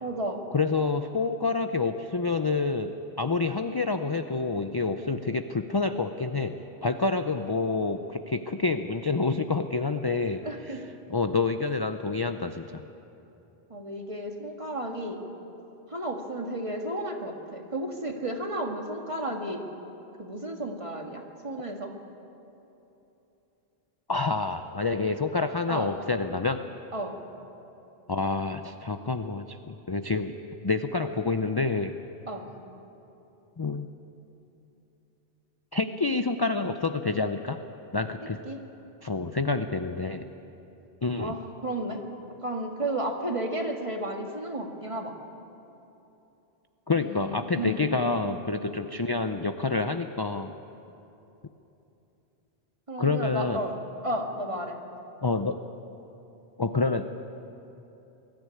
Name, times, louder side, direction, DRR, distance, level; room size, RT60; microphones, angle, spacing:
voice 1, 0.0-0.4 10.4-10.8 13.7-15.2 15.9-19.6 20.2-21.9 25.7-25.9 26.9-27.2 32.3-32.5 38.4-38.6 41.2-42.0 42.4-45.1 46.9-47.9 52.9-54.8, right 1 dB, 30° right, 2 dB, 1.9 m, -33 dB
voice 2, 0.5-10.8 11.1-12.8 24.1-26.6 28.1-30.3 30.6-32.0 33.6-33.9 35.7-37.6 37.9-38.4 39.0-40.3 41.0-41.4 46.9-50.5 53.0-53.6 55.2-55.6 56.6-57.1, left 3 dB, 30° left, 8 dB, 0.5 m, -28 dB
22.5 x 14.0 x 9.8 m, 3.0 s
omnidirectional pair, 1.1 m